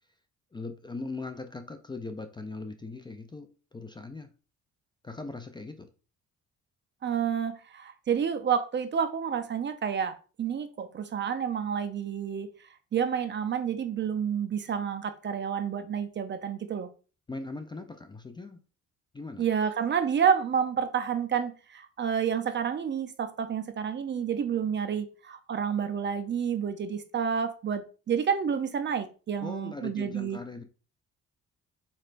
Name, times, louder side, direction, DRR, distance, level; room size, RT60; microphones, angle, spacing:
voice 1, 0.5-4.3 5.0-5.9 17.3-18.6 19.1-19.4 29.4-30.6, left 3 dB, 15° left, 0.4 m, -40 dB
voice 2, 7.0-12.5 12.9-16.9 19.4-30.4, right 7 dB, 40° right, 0.5 m, -29 dB
4.2 x 3.2 x 2.5 m
cardioid pair, 90°, 30 cm